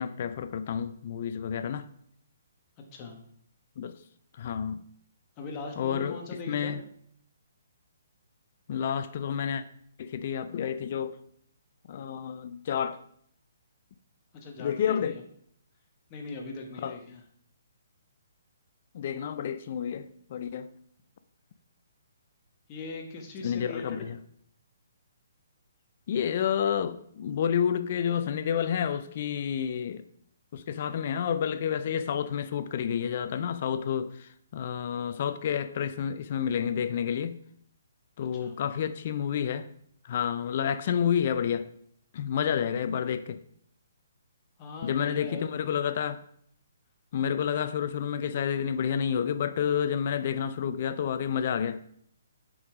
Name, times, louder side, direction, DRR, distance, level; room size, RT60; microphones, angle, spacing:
voice 1, 0.0-1.9 3.8-3.9 4.4-4.8 5.8-6.2 6.5-6.8 8.7-9.6 10.0-11.2 11.9-13.0 14.6-15.1 16.8-17.0 18.9-20.7 23.4-24.2 26.1-30.0 30.5-37.4 38.2-39.7 40.0-41.7 42.1-43.4 44.8-46.2 47.1-51.8, left 8 dB, 45° left, 0.4 m, -29 dB
voice 2, 2.8-3.2 5.4-6.7 14.3-15.2 16.1-17.2 22.7-24.1 38.3-38.5 44.6-45.5, left 3 dB, 25° left, 1.3 m, -40 dB
7.0 x 5.2 x 4.9 m
hypercardioid pair, 160°, 0 cm